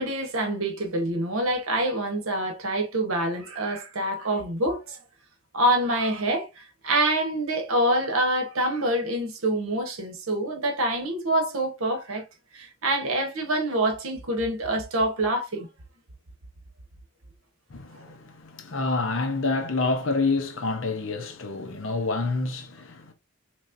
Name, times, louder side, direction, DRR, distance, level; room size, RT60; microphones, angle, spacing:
voice 1, 0.0-5.0 5.5-12.2 12.5-15.7, right 1 dB, 80° right, 1.0 m, -26 dB
voice 2, 17.7-23.1, left 3 dB, 65° left, 0.8 m, -28 dB
4.0 x 3.1 x 2.5 m
head